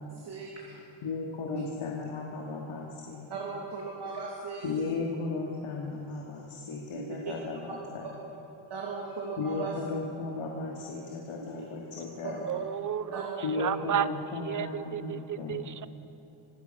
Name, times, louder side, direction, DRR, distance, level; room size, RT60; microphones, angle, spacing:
voice 1, 0.2-0.7 3.3-4.9 6.9-7.1 7.5-7.6 8.7-9.7 11.4-11.5 12.2-12.4 13.1-13.7, right 4 dB, 55° right, -2 dB, 2.6 m, -37 dB
voice 2, 0.7-3.3 4.6-8.1 9.4-12.5 13.4-15.6, left 4 dB, 85° left, -2 dB, 2.5 m, -35 dB
voice 3, 12.5-15.9, right 9 dB, 40° right, 14 dB, 0.7 m, -33 dB
26.5 x 17.0 x 5.9 m, 2.9 s
wide cardioid pair, 175°, 48 cm